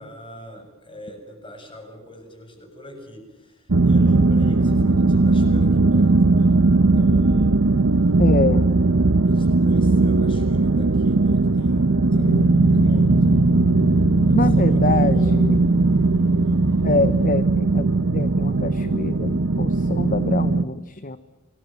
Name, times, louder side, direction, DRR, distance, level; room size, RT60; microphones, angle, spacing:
voice 1, 0.0-7.5 9.2-13.5 14.2-15.4 16.4-16.7, equal, 25° left, 4 dB, 7.3 m, -43 dB
sound 1, 3.7-20.6, right 3 dB, 85° right, 1.0 m, -18 dB
voice 2, 8.2-8.7 14.3-15.6 16.8-17.9 18.1-21.2, left 3 dB, 40° left, 13 dB, 0.9 m, -25 dB
sound 2, 12.1-17.3, left 1 dB, 65° left, 2.5 m, -29 dB
28.5 x 20.5 x 9.3 m, 1.2 s
head